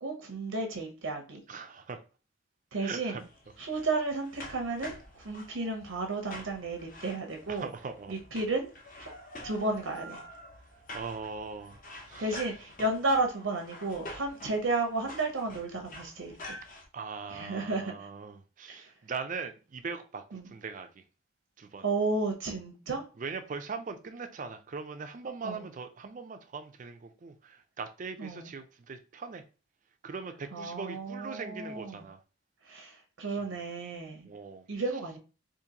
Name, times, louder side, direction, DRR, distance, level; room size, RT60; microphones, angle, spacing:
voice 1, 0.0-1.4 2.7-3.2 3.6-7.7 8.1-8.7 9.0-9.1 9.4-10.2 12.2-16.6 17.3-18.1 18.7-18.9 20.3-20.5 21.8-23.0 25.4-25.7 28.2-28.5 30.5-32.0 32.6-34.3 34.7-35.2, right 3 dB, 85° right, 0.7 m, -33 dB
voice 2, 1.5-2.0 2.8-3.2 7.5-8.1 10.9-11.8 12.1-12.2 16.9-21.0 21.6-21.8 23.2-29.4 30.0-32.2 34.2-34.6, right 4 dB, 40° right, 0.4 m, -40 dB
sound 1, 3.2-16.9, left 1 dB, 40° left, 0.7 m, -47 dB
3.8 x 2.5 x 2.8 m
head